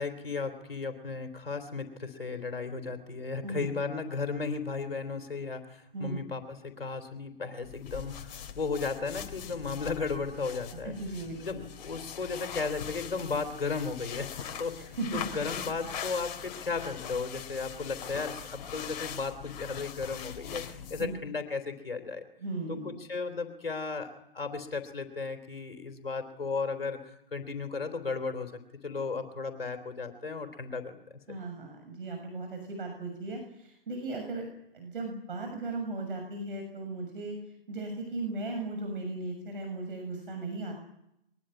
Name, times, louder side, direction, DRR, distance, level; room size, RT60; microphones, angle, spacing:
voice 1, 0.0-10.9 11.4-22.2 22.7-27.0 27.3-28.5 28.8-31.0, left 4 dB, 75° left, 7 dB, 3.6 m, -35 dB
sound 1, 7.6-21.2, left 8 dB, 45° left, 3.2 m, -42 dB
voice 2, 10.8-11.6 14.8-15.2 21.0-21.1 22.4-23.0 31.3-34.5 34.7-37.4 37.7-40.7, right 2 dB, 65° right, 3 dB, 6.8 m, -37 dB
23.0 x 21.5 x 9.7 m, 0.79 s
figure-of-eight pair, 115°, 29 cm